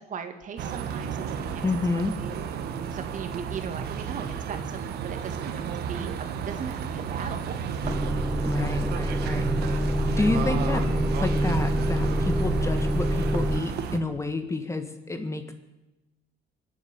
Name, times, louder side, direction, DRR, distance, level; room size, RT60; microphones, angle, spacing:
voice 1, 0.1-2.3 2.9-5.6 5.9-7.5 7.9-8.0, right 6 dB, 50° right, 7 dB, 2.0 m, -38 dB
sound 1, 0.6-14.0, right 7 dB, 70° right, 1.5 m, -33 dB
voice 2, 1.6-2.1 8.4-9.8 10.2-15.4, left 2 dB, 15° left, 8 dB, 1.6 m, -30 dB
Motor vehicle (road) / Engine starting / Idling, 7.8-13.6, equal, 5° right, 0.6 m, -26 dB
24.5 x 8.3 x 7.1 m, 1.0 s
cardioid pair, 110°, 17 cm